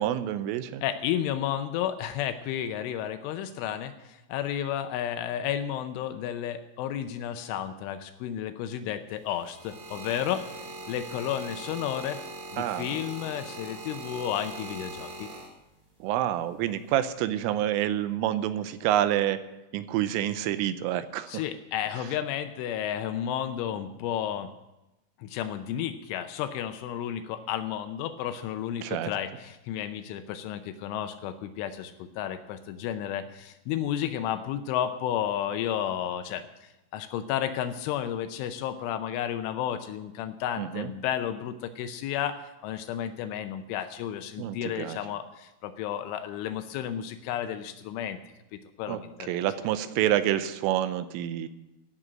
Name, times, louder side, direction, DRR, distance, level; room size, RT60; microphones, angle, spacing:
voice 1, 0.0-0.8 12.6-12.9 16.0-19.4 19.7-21.4 22.0-22.1 28.8-29.1 40.6-40.9 44.4-45.0 48.9-51.5, right 12 dB, 85° right, 12 dB, 3.3 m, -28 dB
voice 2, 0.8-12.2 12.5-15.3 21.3-24.5 25.2-42.4 42.6-48.2 48.5-49.4, left 10 dB, 80° left, 9 dB, 3.1 m, -32 dB
sound 1, 9.1-15.9 16.8-17.1, right 2 dB, 50° right, 4.2 m, -41 dB
15.0 x 6.4 x 9.0 m, 0.97 s
omnidirectional pair, 5.7 m